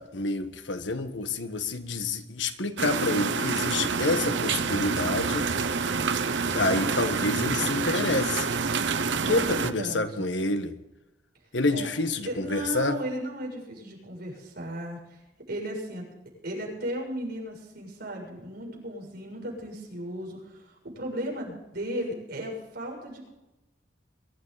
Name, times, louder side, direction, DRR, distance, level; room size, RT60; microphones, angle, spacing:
voice 1, 0.0-5.5 6.5-8.5 9.3-10.7 11.5-13.0, left 2 dB, 85° left, 1.4 m, -28 dB
sound 1, 2.8-9.7, right 5 dB, 75° right, 0.9 m, -27 dB
voice 2, 9.2-10.3 11.7-11.9 12.2-15.2 15.5-16.1 16.4-23.3, equal, 60° right, 7.0 m, -36 dB
23.5 x 12.5 x 4.1 m
head